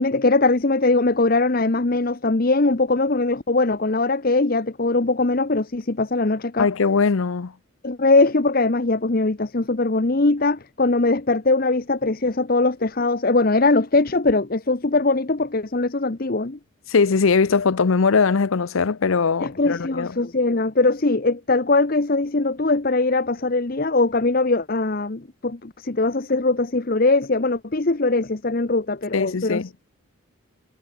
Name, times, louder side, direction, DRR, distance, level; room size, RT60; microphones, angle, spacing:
voice 1, 0.0-6.7 7.8-16.6 19.4-29.6, left 3 dB, 45° left, 0.9 m, -21 dB
voice 2, 6.6-7.5 16.9-20.1 29.1-29.7, left 5 dB, 75° left, 0.6 m, -20 dB
head